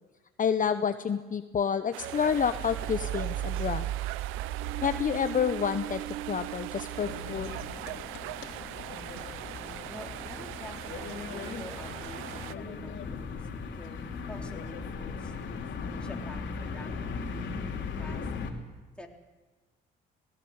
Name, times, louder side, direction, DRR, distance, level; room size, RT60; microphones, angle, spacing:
voice 1, 0.4-3.8 4.8-7.6, left 7 dB, 40° left, 9 dB, 0.9 m, -29 dB
sound 1, 1.9-12.5, right 17 dB, 85° right, 0.5 m, -41 dB
sound 2, 2.0-7.8, right 12 dB, 65° right, 1.2 m, -36 dB
sound 3, 6.9-18.5, left 5 dB, 65° left, 3.1 m, -38 dB
voice 2, 9.9-15.6 16.0-18.5 19.0-19.1, left 1 dB, 5° left, 1 dB, 3.7 m, -48 dB
18.5 x 18.0 x 8.0 m, 1.2 s
supercardioid pair, 70°, 20 cm